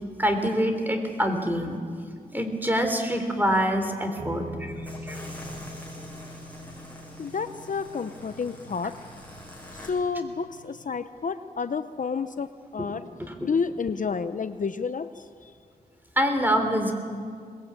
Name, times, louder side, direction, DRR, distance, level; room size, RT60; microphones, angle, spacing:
voice 1, 0.2-1.8 2.3-5.2 12.8-12.9 13.2-13.5 16.2-16.9, equal, 10° right, 5 dB, 3.5 m, -25 dB
sound 1, 4.2-10.7, equal, 45° right, 5.4 m, -43 dB
sound 2, 4.8-9.9, left 1 dB, 10° left, 7.2 m, -44 dB
voice 2, 7.2-9.0 9.7-13.0 13.4-15.5, left 5 dB, 55° left, 11 dB, 0.7 m, -30 dB
22.0 x 21.0 x 8.8 m, 2.2 s
wide cardioid pair, 90°, 16 cm